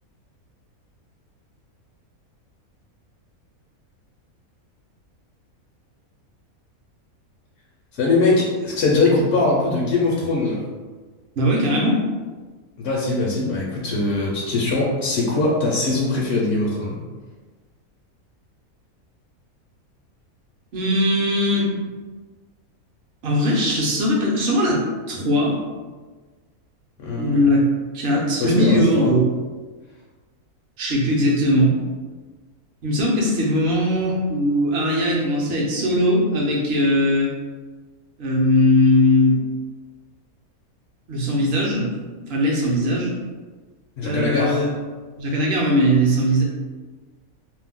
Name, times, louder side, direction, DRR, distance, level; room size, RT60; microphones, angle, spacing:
voice 1, 8.0-10.6 12.8-17.0 27.0-27.4 28.4-29.1 44.0-44.7, left 2 dB, 65° left, -4 dB, 0.7 m, -21 dB
voice 2, 11.4-12.1 20.7-21.7 23.2-25.6 27.2-27.7 27.9-29.3 30.8-31.7 32.8-37.3 38.2-39.4 41.1-41.9 42.3-43.1 44.0-44.7 45.2-46.4, equal, 55° right, -3 dB, 0.8 m, -19 dB
2.6 x 2.1 x 3.6 m, 1.4 s
omnidirectional pair, 1.5 m